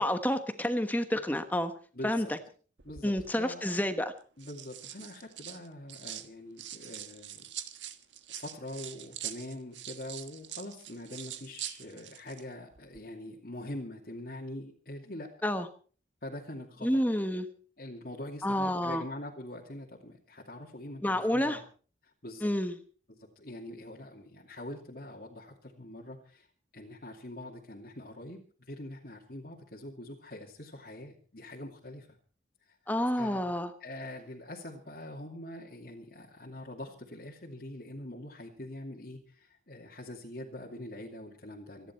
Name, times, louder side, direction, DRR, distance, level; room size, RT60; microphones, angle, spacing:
voice 1, 0.0-1.7 2.0-2.4 3.0-4.1 15.4-15.7 16.8-17.5 18.4-19.0 21.0-21.6 22.4-22.8 32.9-33.7, left 1 dB, 10° left, 8 dB, 1.1 m, -29 dB
voice 2, 1.9-2.3 2.8-3.8 4.4-7.4 8.3-15.3 16.2-17.0 17.8-21.6 22.0-22.5 23.1-26.5 26.7-32.2 32.6-33.5 33.8-41.9, left 1 dB, 50° left, -3 dB, 2.6 m, -44 dB
sound 1, 2.8-3.3 4.2-6.3 6.6-12.4 12.7-13.0, right 11 dB, 85° right, 1.5 m, -44 dB
26.5 x 11.0 x 4.5 m, 0.41 s
head